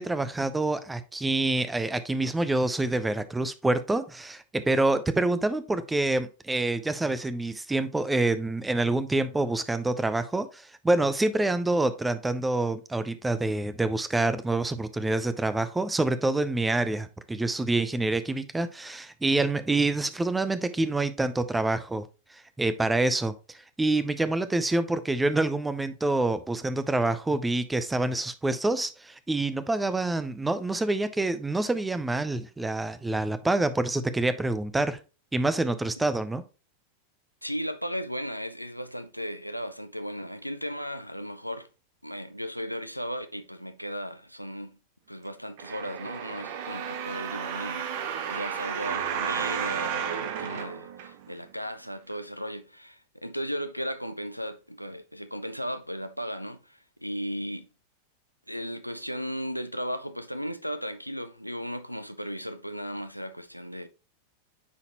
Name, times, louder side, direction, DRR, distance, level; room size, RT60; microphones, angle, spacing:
voice 1, 0.0-22.1 22.6-35.0 35.3-36.4, right 2 dB, 10° right, 0.6 m, -27 dB
voice 2, 37.4-41.7 42.0-44.8 45.1-57.7 58.5-63.9, equal, 90° left, 0.5 m, -36 dB
sound 1, 45.6-51.5 52.1-52.2, right 8 dB, 50° right, 0.8 m, -33 dB
9.6 x 4.1 x 3.0 m
figure-of-eight pair, 90°, 0 cm